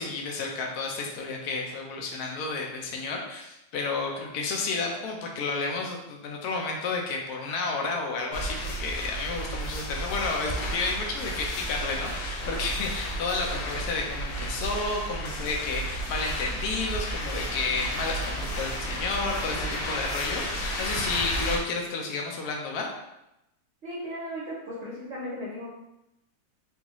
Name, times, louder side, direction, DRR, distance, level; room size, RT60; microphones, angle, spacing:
voice 1, 0.0-22.9, left 3 dB, 70° left, 0 dB, 0.9 m, -31 dB
sound 1, 8.3-21.6, equal, 85° left, 1.4 m, -32 dB
voice 2, 23.8-25.7, equal, 60° right, -6 dB, 0.7 m, -36 dB
3.8 x 2.4 x 2.9 m, 0.89 s
omnidirectional pair, 2.0 m